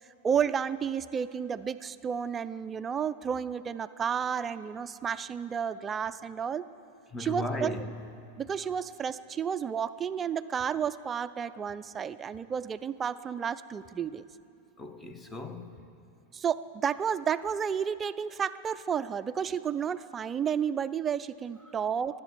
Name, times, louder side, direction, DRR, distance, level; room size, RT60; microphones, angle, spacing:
voice 1, 0.2-6.7 7.2-7.7 8.4-14.2 16.3-22.2, right 7 dB, 20° right, 15 dB, 0.4 m, -31 dB
voice 2, 7.1-8.0 14.8-15.7 21.6-21.8, left 2 dB, 15° left, 8 dB, 0.9 m, -37 dB
22.5 x 8.2 x 7.3 m, 2.6 s
figure-of-eight pair, 90°, 0 cm